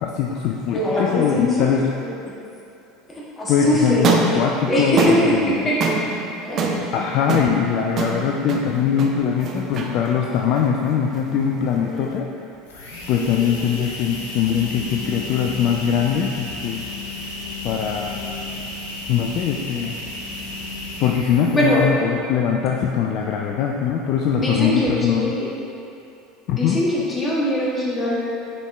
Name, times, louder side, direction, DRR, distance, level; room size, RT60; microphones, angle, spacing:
voice 1, 0.0-1.9 3.5-5.5 6.9-12.3 13.1-16.9 17.6-18.2 19.1-20.0 21.0-25.4 26.5-26.8, left 7 dB, 50° left, 1 dB, 0.3 m, -22 dB
voice 2, 0.7-1.7 3.1-5.3 5.6-5.8 6.4-6.8 11.7-12.1 13.1-13.5 21.5-21.8 24.3-25.5 26.5-28.2, equal, 25° left, -6 dB, 1.5 m, -22 dB
sound 1, 3.9-12.2, right 4 dB, 40° right, 0.6 m, -26 dB
sound 2, 12.7-22.0, left 2 dB, 65° left, 0.8 m, -33 dB
6.8 x 4.3 x 3.3 m, 2.7 s
figure-of-eight pair, 70°, 0 cm